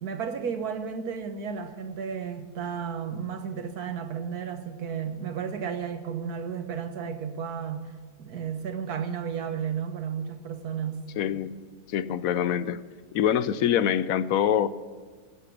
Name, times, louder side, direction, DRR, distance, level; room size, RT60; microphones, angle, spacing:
voice 1, 0.0-7.9 8.2-11.0, right 7 dB, 85° right, 1.7 m, -33 dB
voice 2, 11.2-11.5 11.9-12.8 13.1-14.7, left 9 dB, 70° left, 1.0 m, -24 dB
18.5 x 8.2 x 8.6 m
omnidirectional pair, 1.6 m